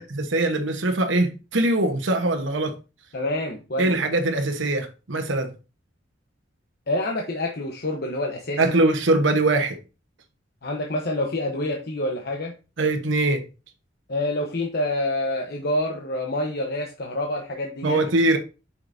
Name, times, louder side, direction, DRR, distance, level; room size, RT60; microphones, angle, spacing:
voice 1, 0.0-2.7 3.8-5.5 8.6-9.8 12.8-13.5 17.8-18.4, right 2 dB, 85° right, 1.2 m, -22 dB
voice 2, 3.1-3.9 6.9-8.8 10.6-12.5 14.1-18.0, left 1 dB, 55° left, 1.0 m, -27 dB
7.8 x 5.9 x 2.7 m
head